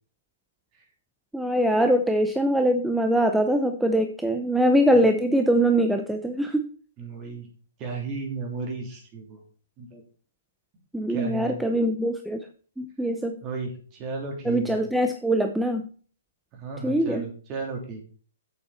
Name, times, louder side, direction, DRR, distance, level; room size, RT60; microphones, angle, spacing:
voice 1, 1.3-6.7 10.9-12.5 12.8-13.4 14.5-15.9 16.8-17.3, right 1 dB, 5° right, 6 dB, 0.6 m, -23 dB
voice 2, 7.0-7.5 7.8-9.4 9.8-10.0 11.1-11.7 13.4-14.8 16.5-18.0, right 4 dB, 30° right, 1 dB, 3.4 m, -34 dB
8.0 x 7.0 x 4.3 m, 0.42 s
hypercardioid pair, 130°, 0 cm